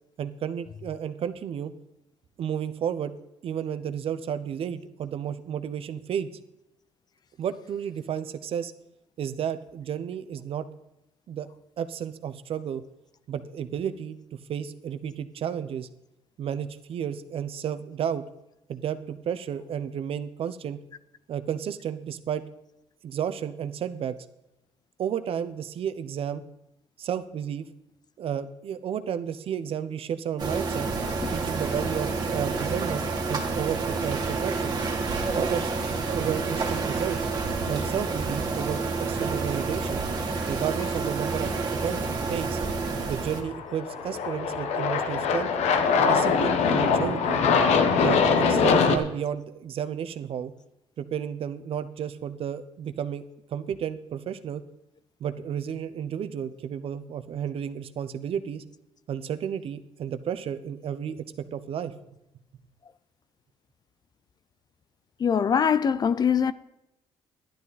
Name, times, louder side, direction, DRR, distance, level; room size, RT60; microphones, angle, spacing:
voice 1, 0.2-1.7 2.4-3.1 3.4-6.3 7.4-8.7 9.2-10.7 11.3-11.5 11.8-12.8 13.3-14.2 14.5-15.9 16.4-18.2 18.7-20.8 21.3-22.4 23.0-24.1 25.0-26.4 27.0-27.7 28.2-30.9 31.3-34.8 35.3-35.7 36.1-37.2 37.7-38.8 39.1-40.0 40.5-41.5 41.8-42.6 43.0-45.5 46.0-47.4 47.9-48.2 48.5-50.5 51.0-53.2 53.5-54.6 55.2-58.6 59.1-61.2 61.5-61.9, right 8 dB, 60° right, 0.7 m, -32 dB
sound 1, 30.4-43.4, right 4 dB, 40° right, 2.0 m, -29 dB
Aircraft, 43.2-49.0, left 5 dB, 85° left, 1.1 m, -22 dB
voice 2, 65.2-66.5, left 7 dB, 40° left, 0.4 m, -22 dB
11.5 x 11.0 x 4.1 m
cardioid pair, 120°, 11 cm